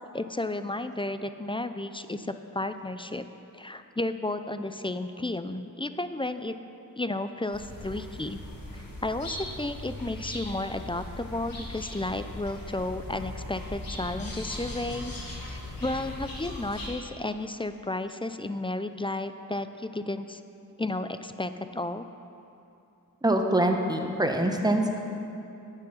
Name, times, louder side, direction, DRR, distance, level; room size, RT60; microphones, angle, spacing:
voice 1, 0.1-3.2 3.5-6.6 7.0-8.4 8.7-15.1 15.5-20.4 20.8-22.1, left 2 dB, 15° left, 10 dB, 0.4 m, -33 dB
sound 1, 7.5-16.9, left 1 dB, 80° left, 1.7 m, -39 dB
voice 2, 23.2-25.0, right 1 dB, 10° right, 3 dB, 0.9 m, -24 dB
9.1 x 7.4 x 5.6 m, 2.7 s
wide cardioid pair, 50°, 34 cm